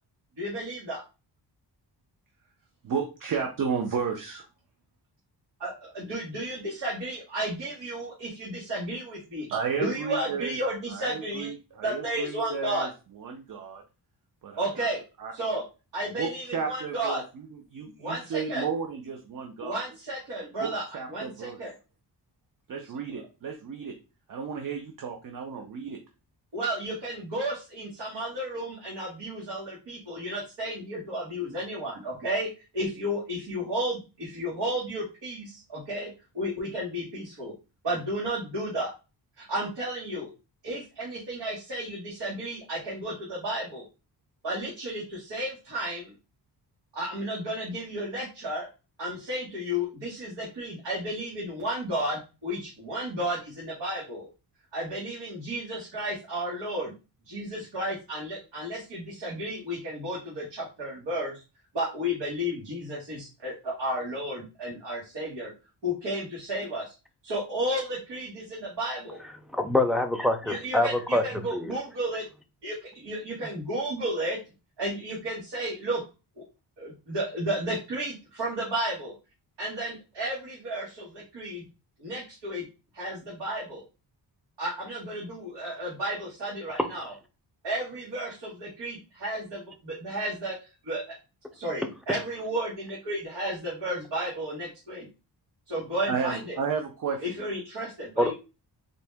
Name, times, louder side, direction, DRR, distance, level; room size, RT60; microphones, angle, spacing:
voice 1, 0.4-1.0 5.6-9.5 9.8-11.5 11.8-12.9 14.6-15.0 15.3-15.6 15.9-17.2 18.0-18.6 19.6-21.7 23.1-23.3 26.5-37.5 37.8-38.9 39.4-40.3 40.6-43.9 44.4-46.1 46.9-48.7 49.0-54.3 54.7-56.9 57.3-61.4 61.7-65.5 65.8-66.9 67.2-69.2 70.5-72.2 72.6-74.4 74.8-76.0 76.4-76.5 76.8-79.1 79.6-81.6 82.0-82.6 82.9-83.8 84.6-87.1 87.6-90.6 90.8-91.0 91.5-95.1 95.7-96.6 97.2-98.3, right 1 dB, 85° right, 1.8 m, -33 dB
voice 2, 2.8-4.4 9.5-10.6 10.9-12.9 13.2-13.8 14.4-14.9 15.2-15.6 16.2-19.8 20.6-20.7 20.9-21.6 22.7-23.9 24.3-26.0 96.1-97.2, right 6 dB, 50° right, 0.6 m, -33 dB
voice 3, 69.5-71.2 71.5-71.7 86.8-86.9 98.2-98.3, left 1 dB, ahead, 0.3 m, -25 dB
4.0 x 2.7 x 3.4 m
wide cardioid pair, 175°, 42 cm